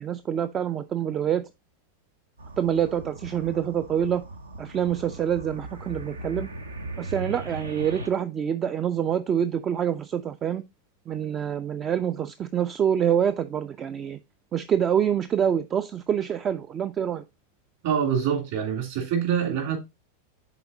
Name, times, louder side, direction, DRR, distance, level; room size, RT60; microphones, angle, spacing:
voice 1, 0.0-1.4 2.6-4.2 4.6-6.5 7.0-10.6 11.1-14.2 14.5-17.2, right 9 dB, 25° right, 0.3 m, -26 dB
sound 1, 2.4-8.1, right 2 dB, 75° right, 0.7 m, -38 dB
voice 2, 17.8-19.8, right 8 dB, 55° right, 2.7 m, -25 dB
11.0 x 4.0 x 2.6 m
figure-of-eight pair, 90°, 0 cm